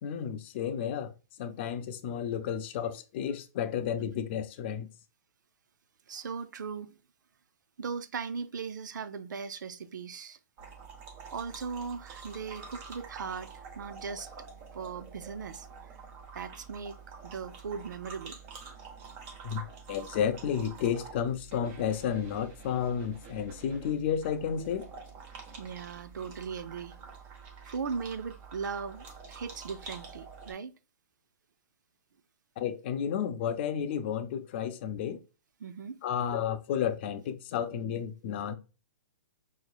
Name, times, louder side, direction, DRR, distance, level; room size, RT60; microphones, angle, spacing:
voice 1, 0.0-1.1 1.4-4.9 19.4-24.9 32.6-35.2 36.0-38.5, left 8 dB, 35° left, 0.5 m, -32 dB
voice 2, 6.1-7.0 7.8-10.4 11.3-14.3 14.7-16.0 16.3-17.0 17.2-18.4 25.6-27.1 27.6-30.7 35.6-36.0, right 5 dB, 85° right, 0.5 m, -38 dB
sound 1, 10.6-30.5, right 5 dB, 25° right, 0.8 m, -48 dB
5.5 x 2.9 x 2.3 m
hypercardioid pair, 155°, 10 cm